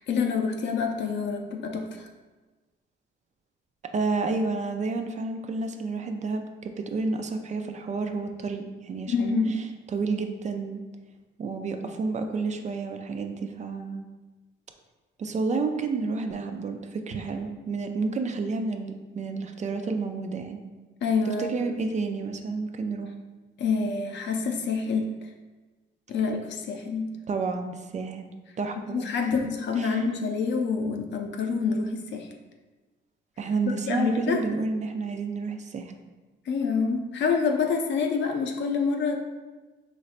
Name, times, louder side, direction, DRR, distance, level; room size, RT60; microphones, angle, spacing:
voice 1, 0.0-2.1 9.1-9.6 21.0-21.7 23.6-25.1 26.1-27.1 28.9-32.3 33.9-34.4 36.5-39.2, left 5 dB, 65° left, 4 dB, 0.5 m, -27 dB
voice 2, 3.9-9.4 9.9-10.8 11.4-14.1 15.2-20.6 21.3-23.1 27.3-28.3 28.6-29.0 29.8-30.0 33.4-35.9, right 4 dB, 35° right, 6 dB, 0.3 m, -30 dB
4.0 x 3.1 x 2.5 m, 1.3 s
cardioid pair, 90°, 20 cm